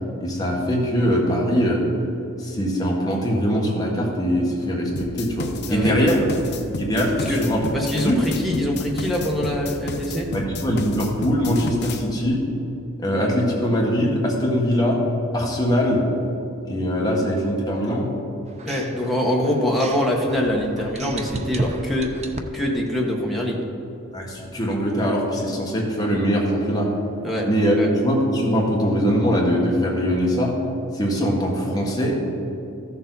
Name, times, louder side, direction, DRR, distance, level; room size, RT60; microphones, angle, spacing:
voice 1, 0.2-1.8 2.4-6.2 6.8-7.6 8.0-8.2 10.3-12.4 13.0-15.0 15.3-16.0 16.7-18.1 24.1-26.9 27.5-27.7 28.0-30.5 30.9-32.2, equal, 20° left, -3 dB, 1.5 m, -22 dB
sound 1, 5.0-12.0, left 2 dB, 50° left, 0.7 m, -31 dB
voice 2, 5.7-6.1 7.2-7.4 7.7-10.3 18.6-22.1 22.5-23.6 27.2-27.5 27.8-27.9, left 1 dB, ahead, -3 dB, 1.3 m, -24 dB
sound 2, 18.5-22.7, right 2 dB, 30° right, 0.5 m, -32 dB
14.0 x 6.9 x 4.0 m, 2.8 s
head